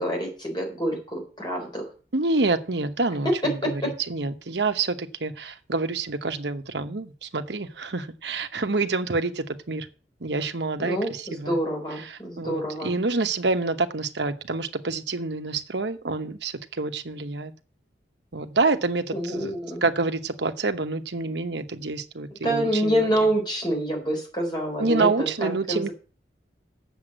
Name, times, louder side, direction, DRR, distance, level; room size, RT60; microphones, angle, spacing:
voice 1, 0.0-1.8 3.2-3.9 10.8-13.0 19.1-19.8 22.4-25.9, equal, 25° left, 1 dB, 4.0 m, -27 dB
voice 2, 2.1-9.9 10.2-11.6 12.0-17.5 18.3-19.5 19.8-23.1 24.8-25.9, right 3 dB, 70° right, 8 dB, 1.0 m, -27 dB
8.0 x 7.2 x 7.6 m, 0.38 s
head